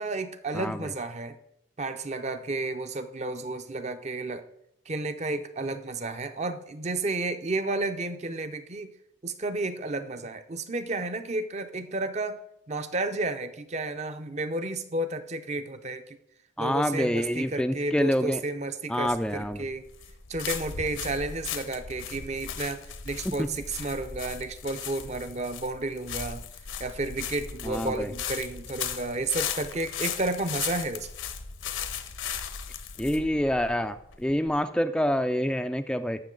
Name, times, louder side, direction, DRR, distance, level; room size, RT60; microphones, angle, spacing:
voice 1, 0.0-1.4 1.8-4.4 4.9-8.9 9.2-12.4 12.7-16.2 16.6-19.9 20.3-26.4 26.8-31.1, right 2 dB, 35° right, 9 dB, 0.6 m, -32 dB
voice 2, 16.6-18.4 18.9-19.7 27.7-28.1 33.0-33.9 34.2-36.2, equal, 5° left, 9 dB, 0.3 m, -27 dB
sound 1, 19.1-34.6, left 8 dB, 75° left, 0.9 m, -37 dB
14.5 x 6.1 x 3.8 m, 0.79 s
head